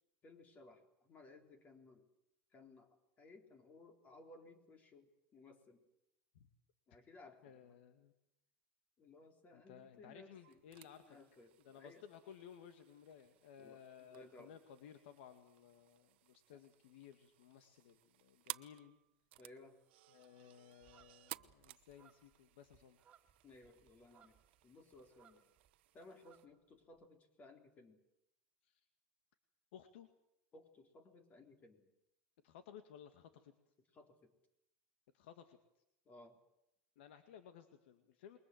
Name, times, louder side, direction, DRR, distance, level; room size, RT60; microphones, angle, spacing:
voice 1, 0.2-2.1 2.5-5.8 6.9-7.7 9.0-10.6 11.1-12.0 13.6-14.6 16.5-16.6 19.4-19.8 23.4-24.4 24.6-25.5 25.9-28.0 30.5-31.9 33.9-34.3 36.1-36.4, left 2 dB, 25° left, 6 dB, 3.9 m, -60 dB
voice 2, 7.4-8.1 9.5-11.2 11.6-19.0 20.1-23.0 28.6-28.9 29.7-30.1 32.4-33.7 35.1-35.8 37.0-38.4, left 9 dB, 85° left, 8 dB, 2.1 m, -58 dB
sound 1, 10.4-26.5, right 18 dB, 80° right, 0.9 m, -57 dB
sound 2, 20.8-25.8 26.0-27.0, right 9 dB, 25° right, 2.8 m, -70 dB
28.0 x 22.0 x 7.9 m, 0.84 s
supercardioid pair, 140°, 6 cm